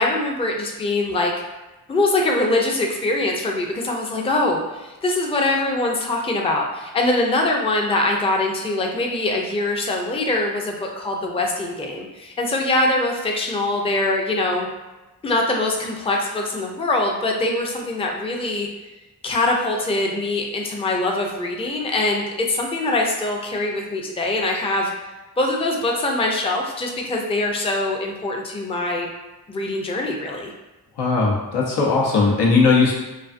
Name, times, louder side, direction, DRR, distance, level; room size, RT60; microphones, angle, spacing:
voice 1, 0.0-1.3 1.9-14.7 15.2-18.7 19.2-24.9 25.4-29.1 29.5-30.5, left 2 dB, 15° left, 0 dB, 0.4 m, -23 dB
voice 2, 31.0-32.9, left 4 dB, 85° left, -3 dB, 0.7 m, -18 dB
2.4 x 2.4 x 2.5 m, 1.1 s
cardioid pair, 45°, 39 cm